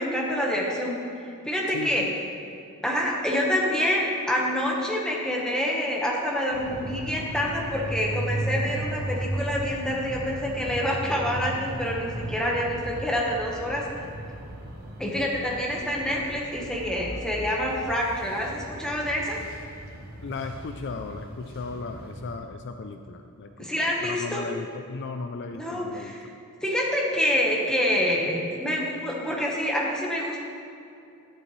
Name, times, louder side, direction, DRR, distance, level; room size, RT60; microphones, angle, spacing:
voice 1, 0.0-2.0 2.8-13.8 15.0-19.4 23.6-24.4 25.5-26.3 26.6-30.4, equal, 5° left, -3 dB, 1.1 m, -27 dB
voice 2, 1.7-2.1 20.2-26.1, left 4 dB, 50° left, 6 dB, 0.4 m, -36 dB
sound 1, 6.5-22.4, right 1 dB, 45° right, 1.1 m, -36 dB
11.0 x 7.6 x 3.2 m, 2.6 s
head